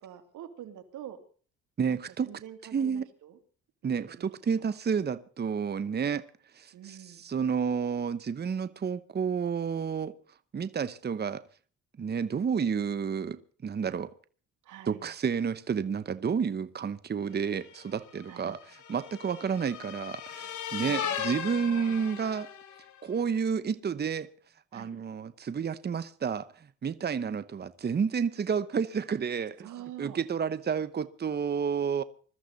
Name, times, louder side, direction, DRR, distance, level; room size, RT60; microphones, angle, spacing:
voice 1, 0.0-1.2 1.9-3.4 3.8-4.3 6.7-7.2 14.6-15.0 18.3-18.4 20.9-21.9 24.7-24.9 29.6-30.2, right 11 dB, 80° right, 2.7 m, -46 dB
voice 2, 1.8-2.3 2.7-3.1 3.8-6.2 6.5-10.1 10.5-11.4 12.0-14.1 14.9-22.5 23.0-24.3 24.7-29.7 30.0-32.0, right 6 dB, 35° right, 0.9 m, -30 dB
sound 1, 17.5-22.9, left 8 dB, 75° left, 2.8 m, -38 dB
21.5 x 13.5 x 4.1 m
cardioid pair, 90°, 30 cm